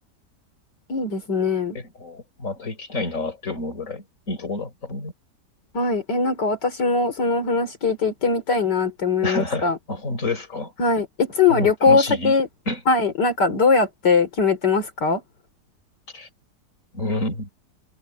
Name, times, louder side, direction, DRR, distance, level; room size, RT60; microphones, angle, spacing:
voice 1, 0.9-1.8 5.7-9.8 10.8-12.5 12.9-15.2, left 4 dB, 80° left, 3.6 m, -21 dB
voice 2, 1.7-5.1 9.2-10.7 11.5-12.4 12.7-12.8 16.1-16.3 16.9-17.5, left 2 dB, 45° left, 4.8 m, -29 dB
omnidirectional pair, 1.8 m